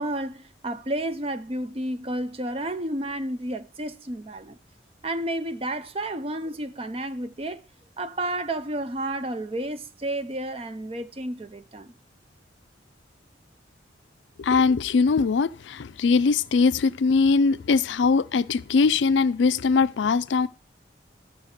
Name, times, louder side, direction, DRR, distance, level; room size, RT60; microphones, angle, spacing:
voice 1, 0.0-4.6 5.0-7.6 8.0-11.9, right 1 dB, 30° right, 0.6 m, -31 dB
voice 2, 14.4-20.5, left 4 dB, 75° left, 0.4 m, -21 dB
12.5 x 4.5 x 6.5 m
head